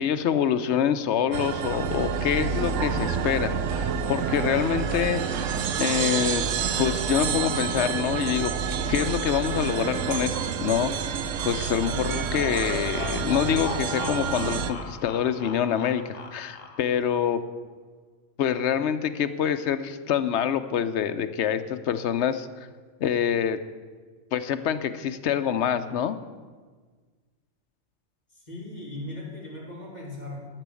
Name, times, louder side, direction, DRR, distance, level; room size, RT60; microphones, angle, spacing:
voice 1, 0.0-5.5 5.8-6.5 6.8-8.5 8.9-11.2 11.4-17.4 18.4-22.5 23.0-23.6 24.3-26.2, left 9 dB, 70° left, 11 dB, 0.9 m, -26 dB
sound 1, 1.3-14.7, right 7 dB, 85° right, 1.1 m, -28 dB
sound 2, 12.0-17.1, left 4 dB, 90° left, 1.4 m, -39 dB
voice 2, 28.3-30.5, left 1 dB, 35° left, -4 dB, 3.0 m, -38 dB
12.0 x 6.1 x 8.3 m, 1.5 s
omnidirectional pair, 1.3 m